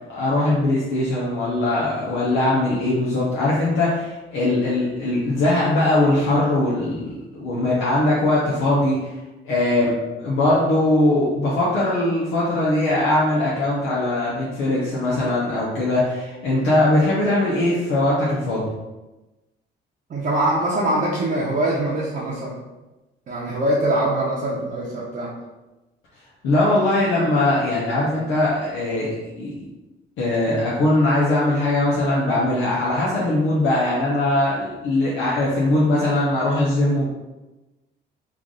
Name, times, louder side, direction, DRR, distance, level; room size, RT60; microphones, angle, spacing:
voice 1, 0.1-9.1 9.4-9.9 10.2-18.6 26.4-29.1 29.4-29.7 30.2-37.1, left 1 dB, 85° left, -6 dB, 0.8 m, -20 dB
voice 2, 20.1-22.6 23.3-25.3, right 1 dB, 45° right, -6 dB, 0.8 m, -23 dB
3.3 x 2.5 x 3.8 m, 1.1 s
cardioid pair, 90°, 20 cm